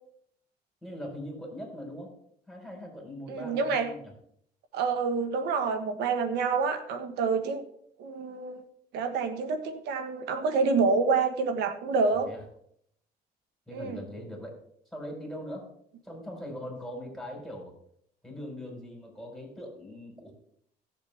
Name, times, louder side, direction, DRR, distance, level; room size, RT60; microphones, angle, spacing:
voice 1, 0.8-2.1 2.5-4.1 12.1-12.4 13.7-14.6 14.9-15.7 16.0-17.7 18.2-20.3, equal, ahead, -1 dB, 4.5 m, -41 dB
voice 2, 3.3-3.9 4.7-7.6 8.0-8.6 8.9-12.3 13.7-14.0, right 4 dB, 85° right, 9 dB, 1.4 m, -27 dB
16.0 x 7.5 x 3.5 m, 0.68 s
cardioid pair, 110°, 17 cm